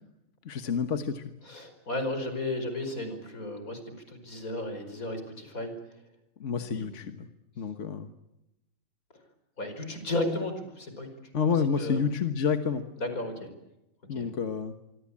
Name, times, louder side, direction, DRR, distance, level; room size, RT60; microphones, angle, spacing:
voice 1, 0.5-1.2 6.4-7.3 7.6-8.1 11.3-12.8 14.1-14.7, left 6 dB, 60° left, 9 dB, 1.6 m, -29 dB
voice 2, 1.4-3.8 4.1-5.7 6.6-7.0 9.6-11.1 11.4-12.0 13.0-13.5 14.1-14.3, left 2 dB, 90° left, 8 dB, 5.4 m, -34 dB
25.5 x 25.0 x 8.6 m, 0.91 s
omnidirectional pair, 1.4 m